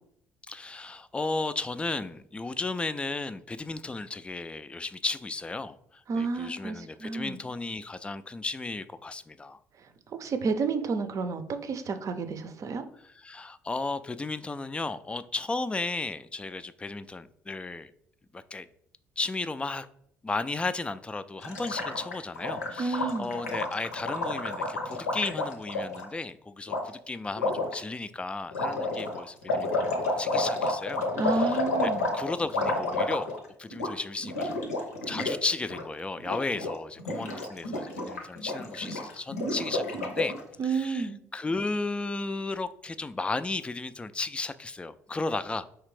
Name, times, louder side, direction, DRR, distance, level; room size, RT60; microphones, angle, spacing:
voice 1, 0.5-9.6 12.9-17.9 18.3-18.7 19.2-19.9 20.2-33.3 33.6-34.6 35.1-40.4 40.6-45.6, left 3 dB, 15° left, 12 dB, 0.3 m, -34 dB
voice 2, 6.1-6.8 7.0-7.4 10.2-12.8 22.8-23.3 31.2-32.1 40.6-41.2, right 4 dB, 45° right, 9 dB, 0.6 m, -30 dB
Gurgling, 21.4-26.0 26.7-26.8 27.4-27.7 28.5-33.5 33.7-33.9 34.2-35.4 35.6-35.8 36.2-36.7 37.0-40.4, left 2 dB, 85° left, 0.7 m, -30 dB
4.9 x 3.3 x 3.2 m, 0.70 s
hypercardioid pair, 50°, 8 cm